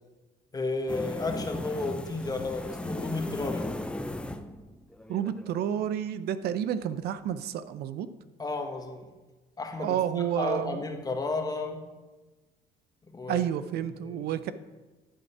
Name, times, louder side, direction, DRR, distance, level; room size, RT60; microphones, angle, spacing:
voice 1, 0.5-3.6 8.4-9.1 9.6-11.8 13.1-13.5 14.0-14.3, left 3 dB, 20° left, 4 dB, 1.3 m, -33 dB
sound 1, 0.9-5.5, left 1 dB, 5° left, 0.5 m, -36 dB
voice 2, 5.1-8.1 9.8-10.8 13.3-14.5, right 10 dB, 70° right, 13 dB, 0.5 m, -30 dB
11.0 x 5.2 x 6.0 m, 1.2 s
cardioid pair, 110°, 17 cm